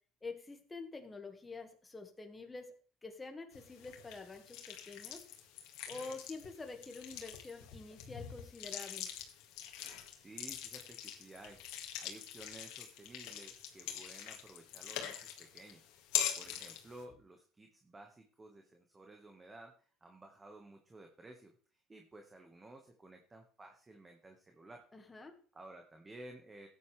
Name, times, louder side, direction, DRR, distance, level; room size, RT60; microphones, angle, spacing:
voice 1, 0.2-2.7 3.0-5.2 5.9-9.1 24.9-25.3, left 3 dB, 15° left, 5 dB, 1.8 m, -47 dB
sound 1, 3.5-17.0, left 10 dB, 75° left, 2.0 m, -43 dB
voice 2, 10.1-11.6 12.0-15.9 16.3-19.7 20.0-21.5 21.9-24.8 25.5-26.7, right 2 dB, 20° right, 3 dB, 1.6 m, -54 dB
14.0 x 9.5 x 3.4 m, 0.42 s
supercardioid pair, 100°, 0 cm